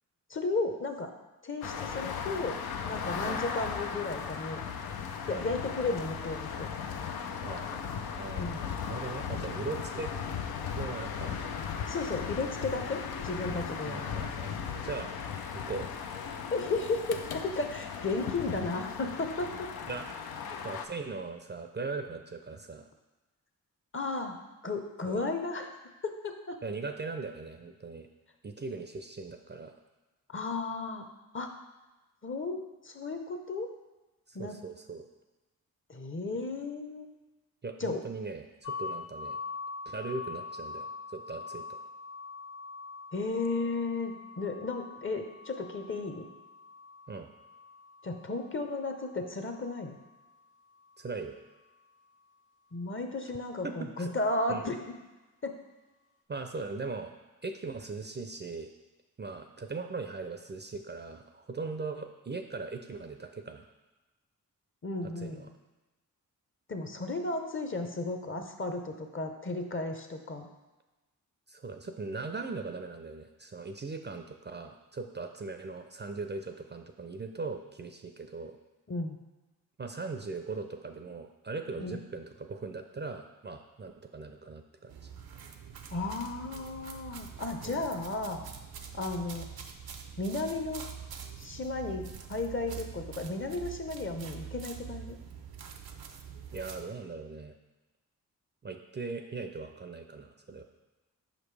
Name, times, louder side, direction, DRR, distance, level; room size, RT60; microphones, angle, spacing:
voice 1, 0.3-1.1 1.4-2.6 2.8-4.6 5.3-6.7 8.4-8.6 11.9-14.3 16.5-19.7 23.9-24.4 24.6-25.7 26.0-26.6 30.3-31.0 31.3-31.5 32.2-33.7 34.3-34.5 35.9-37.2 37.8-38.0 43.1-46.3 48.0-50.0 52.7-54.8 55.4-55.5 64.8-65.5 66.7-70.5 78.9-79.2 81.8-82.0 85.9-88.4 88.9-89.4 90.2-90.9 91.4-95.2, left 3 dB, 35° left, 5 dB, 0.8 m, -34 dB
sound 1, 1.6-20.9, left 7 dB, 80° left, 0.5 m, -37 dB
voice 2, 7.4-10.1 10.8-11.4 13.9-14.6 14.8-15.1 15.5-15.9 19.9-20.1 20.6-22.9 25.0-25.2 26.6-28.1 28.4-29.7 34.3-35.0 37.6-39.4 39.9-41.6 47.1-47.3 51.0-51.4 53.6-54.7 56.3-57.1 57.4-58.7 59.2-63.7 65.2-65.5 71.5-78.6 79.8-85.1 87.6-87.9 96.5-97.5 98.6-100.6, right 3 dB, 30° right, 6 dB, 0.5 m, -39 dB
sound 2, 38.6-50.4, left 4 dB, 55° left, 1.3 m, -44 dB
sound 3, 84.9-96.8, right 7 dB, 80° right, 0.6 m, -45 dB
5.5 x 5.1 x 3.3 m, 1.1 s
cardioid pair, 45°, 36 cm